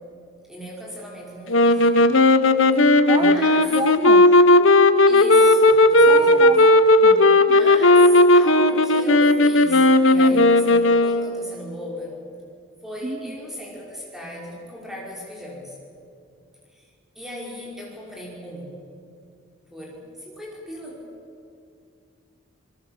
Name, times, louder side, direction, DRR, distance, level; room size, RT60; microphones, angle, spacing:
voice 1, 0.5-2.1 3.1-3.7 5.1-6.5 7.4-12.3 12.8-15.8 16.7-16.9 17.2-18.8 19.7-21.1, left 1 dB, ahead, -3 dB, 5.5 m, -37 dB
sound 1, 1.5-11.5, left 1 dB, 60° left, 1.1 m, -15 dB
voice 2, 3.1-4.3 6.1-7.3 13.0-13.4, right 2 dB, 20° right, 7 dB, 0.9 m, -29 dB
27.0 x 21.0 x 7.5 m, 2.4 s
head